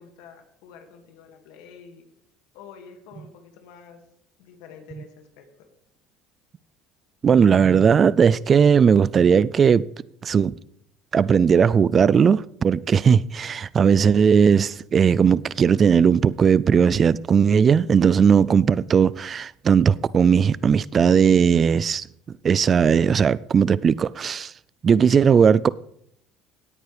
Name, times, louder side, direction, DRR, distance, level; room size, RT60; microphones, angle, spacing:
voice 1, 0.0-2.1 2.5-4.0 4.4-5.7, left 6 dB, 80° left, 2.0 m, -47 dB
voice 2, 7.2-9.9 10.2-10.6 11.1-22.1 22.4-24.5 24.8-25.7, right 7 dB, 35° right, 0.3 m, -18 dB
17.0 x 9.0 x 3.4 m
supercardioid pair, 105°, 0 cm